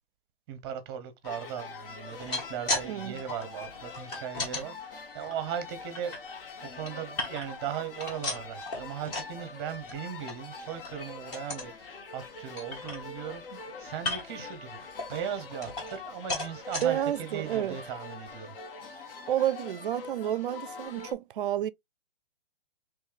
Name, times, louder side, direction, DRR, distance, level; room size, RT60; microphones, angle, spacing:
voice 1, 0.5-6.1 6.6-14.8 15.1-18.6, right 9 dB, 25° right, 0.7 m, -38 dB
sound 1, 1.2-21.1, left 4 dB, 65° left, 1.0 m, -44 dB
sound 2, 2.0-2.9 3.2-4.6 5.2-6.2 6.6-7.7 8.0-9.4 9.7-10.0 10.3-10.4 10.8-11.0 11.3-11.7 12.2-12.3 12.6-13.4 14.0-14.4 15.0-16.0 16.3-16.9 17.5-17.6 17.9-18.0, left 2 dB, 25° left, 1.0 m, -35 dB
voice 2, 2.8-3.2 16.8-17.8 19.3-21.7, right 11 dB, 60° right, 0.4 m, -30 dB
3.1 x 3.1 x 3.5 m
hypercardioid pair, 150°, 30 cm